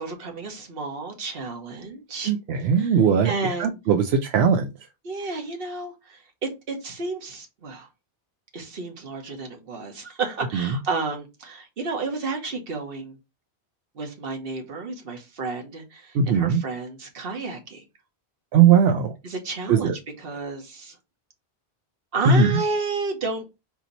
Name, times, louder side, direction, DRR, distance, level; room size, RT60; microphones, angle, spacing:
voice 1, 0.0-2.3 2.7-3.0 3.2-3.8 5.0-7.9 8.5-13.2 13.9-17.8 19.2-19.9 20.2-20.9 22.1-23.4, right 3 dB, 65° right, 1.3 m, -31 dB
voice 2, 2.3-3.3 3.6-4.7 10.5-10.7 16.1-16.6 18.5-19.1 19.7-19.9 22.3-22.5, right 6 dB, 85° right, 0.8 m, -19 dB
4.5 x 2.8 x 4.0 m
omnidirectional pair, 1.1 m